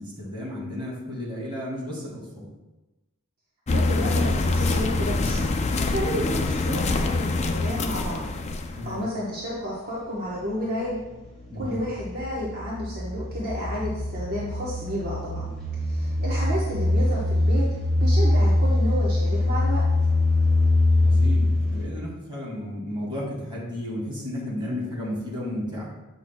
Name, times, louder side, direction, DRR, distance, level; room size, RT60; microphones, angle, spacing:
voice 1, 0.0-2.5 8.7-9.0 11.5-11.7 21.0-25.9, left 1 dB, 25° right, -5 dB, 2.3 m, -33 dB
sound 1, 3.7-8.9, left 2 dB, 30° left, 0.4 m, -25 dB
voice 2, 3.7-5.5 5.9-8.2 8.6-11.0 11.5-15.4 15.8-17.6 18.0-19.8, equal, 45° right, -7 dB, 1.2 m, -31 dB
sound 2, 9.4-9.6 10.3-21.8, left 2 dB, 5° left, 2.3 m, -23 dB
8.3 x 6.2 x 2.3 m, 1.1 s
head